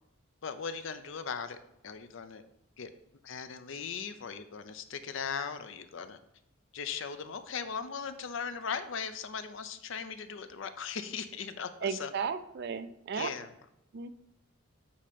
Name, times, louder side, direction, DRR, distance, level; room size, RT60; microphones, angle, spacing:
voice 1, 0.4-1.6 1.8-2.4 2.8-2.9 3.2-6.2 6.7-12.1 13.1-13.5, left 6 dB, 60° left, 10 dB, 0.5 m, -38 dB
voice 2, 11.8-13.3 13.9-14.1, right 6 dB, 50° right, 12 dB, 0.4 m, -34 dB
8.4 x 2.9 x 5.0 m, 0.81 s
head